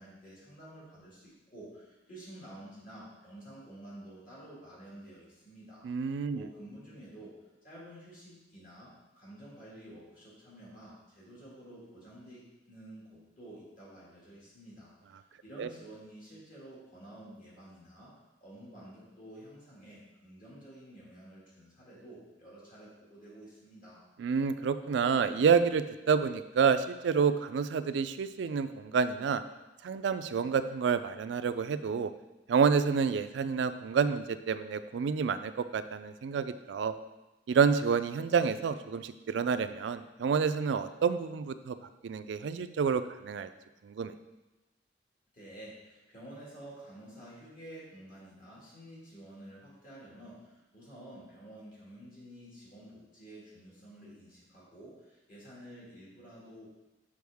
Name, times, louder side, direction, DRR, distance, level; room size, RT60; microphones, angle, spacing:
voice 1, 0.0-5.9 6.3-7.3 7.6-8.9 9.2-18.1 18.4-24.0 45.3-56.7, right 1 dB, 45° left, -7 dB, 2.1 m, -50 dB
voice 2, 5.8-6.4 15.6-15.7 24.2-29.4 29.8-32.1 32.5-36.9 37.5-41.8 42.0-43.5 43.8-44.1, right 6 dB, 80° right, 12 dB, 0.3 m, -28 dB
6.2 x 4.8 x 3.5 m, 1.0 s
head